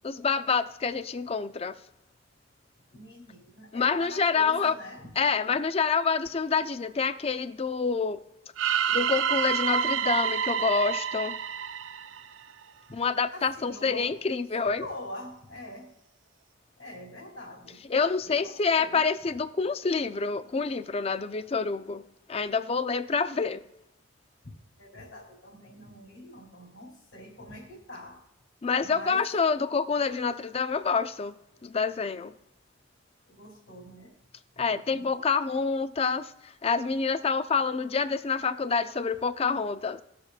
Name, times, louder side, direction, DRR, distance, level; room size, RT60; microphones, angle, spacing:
voice 1, 0.0-1.7 3.7-4.8 5.2-8.2 8.9-11.4 12.9-14.8 17.9-22.0 22.3-23.6 28.6-31.3 31.6-32.3 34.6-36.3 36.6-40.0, left 5 dB, 30° left, 0.4 m, -27 dB
voice 2, 2.9-5.1 12.9-13.0 13.3-14.1 14.6-15.9 16.8-17.8 18.2-19.0 24.8-28.2 28.8-29.2 33.3-34.1 34.5-35.3, left 1 dB, 70° left, 3.0 m, -44 dB
sound 1, 8.6-12.6, right 8 dB, 70° right, 0.4 m, -28 dB
19.5 x 6.7 x 2.4 m
head